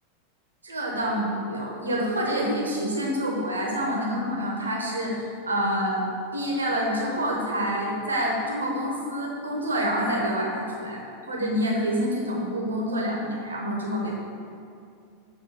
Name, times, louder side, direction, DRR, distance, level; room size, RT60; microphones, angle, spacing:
voice 1, 0.6-5.1 5.5-14.1, equal, 80° right, -2 dB, 1.1 m, -27 dB
6.9 x 2.9 x 4.9 m, 2.4 s
figure-of-eight pair, 85°, 0 cm